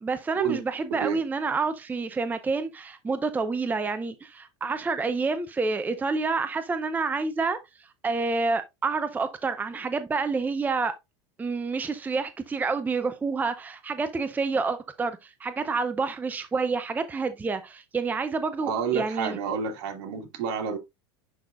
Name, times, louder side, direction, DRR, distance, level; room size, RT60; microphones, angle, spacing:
voice 1, 0.0-10.9 11.4-19.4, right 4 dB, 15° right, 0.6 m, -28 dB
voice 2, 18.6-20.8, right 7 dB, 65° right, 2.1 m, -29 dB
11.0 x 3.9 x 2.5 m
supercardioid pair, 120°, 14 cm